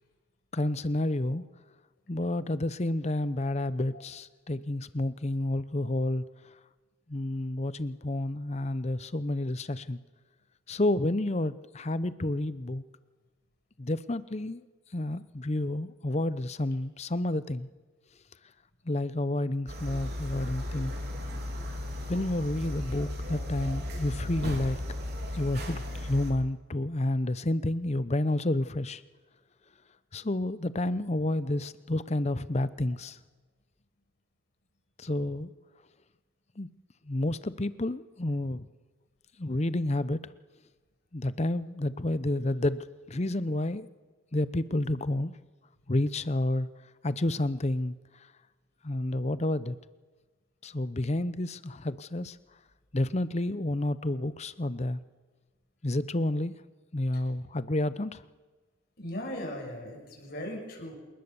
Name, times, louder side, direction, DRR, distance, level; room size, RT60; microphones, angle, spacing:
voice 1, 0.5-1.4 2.1-6.2 7.1-10.0 10.7-12.8 13.8-14.6 14.9-17.7 18.8-20.9 22.1-24.8 25.3-29.0 30.1-33.2 35.0-35.5 36.6-36.7 37.0-38.7 39.4-40.2 41.1-43.9 44.3-45.4 45.9-46.7 47.0-48.0 48.8-49.8 50.6-52.4 52.9-55.0 55.8-56.6 56.9-58.2, left 1 dB, 35° left, 15 dB, 0.8 m, -30 dB
sound 1, 19.7-26.3, left 1 dB, 55° right, 3.8 m, -35 dB
voice 2, 59.0-60.9, left 1 dB, 50° left, 0 dB, 6.8 m, -38 dB
27.5 x 19.0 x 7.1 m, 1.3 s
head